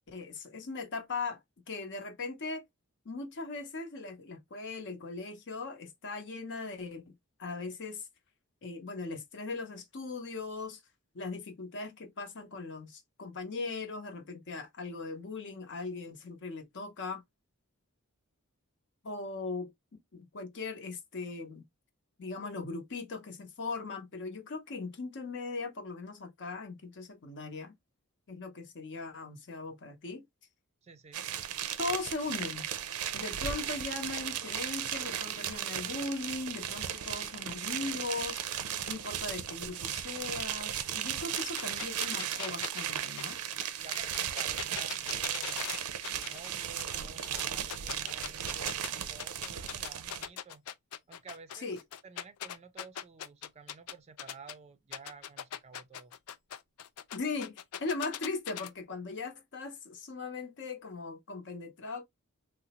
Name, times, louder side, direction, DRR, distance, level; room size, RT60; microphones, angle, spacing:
voice 1, 0.1-1.4 1.7-2.6 3.0-7.1 7.4-8.1 8.6-10.8 11.1-17.2 19.0-19.7 20.1-21.6 22.2-27.7 28.3-30.2 31.8-32.7 33.1-38.4 38.9-43.4 51.5-51.8 57.1-62.0, left 3 dB, 55° left, 0.7 m, -39 dB
voice 2, 30.8-31.3 43.5-45.8 46.3-50.6 51.1-56.1, right 4 dB, 30° right, 0.4 m, -52 dB
sound 1, 31.1-50.3, right 9 dB, 85° right, 0.5 m, -36 dB
sound 2, 41.3-46.5 46.8-48.9 49.2-54.5 54.9-58.7, left 10 dB, 80° left, 0.4 m, -41 dB
3.8 x 2.0 x 2.8 m
head